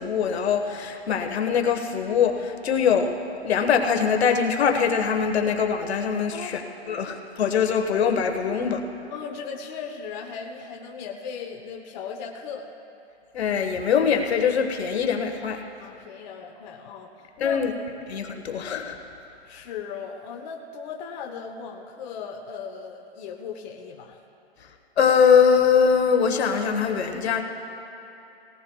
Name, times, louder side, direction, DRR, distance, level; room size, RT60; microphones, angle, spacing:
voice 1, 0.0-3.1 3.4-6.6 6.9-8.8 13.3-15.6 17.4-17.7 18.1-19.0 25.0-27.4, left 6 dB, 70° left, 5 dB, 1.4 m, -22 dB
voice 2, 6.3-7.1 9.1-12.7 15.8-17.8 19.4-24.2, left 6 dB, 40° left, 2 dB, 1.0 m, -37 dB
19.0 x 18.0 x 2.3 m, 2.9 s
hypercardioid pair, 135°, 33 cm